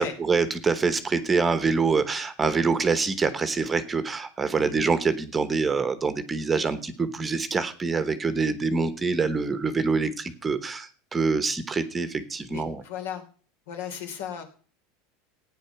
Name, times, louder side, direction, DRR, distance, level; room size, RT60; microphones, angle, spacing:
voice 1, 0.0-12.8, right 4 dB, 15° right, 12 dB, 1.0 m, -25 dB
voice 2, 12.5-13.2 13.7-14.4, left 8 dB, 75° left, 5 dB, 3.1 m, -35 dB
15.0 x 9.3 x 5.9 m, 0.42 s
supercardioid pair, 165°, 0 cm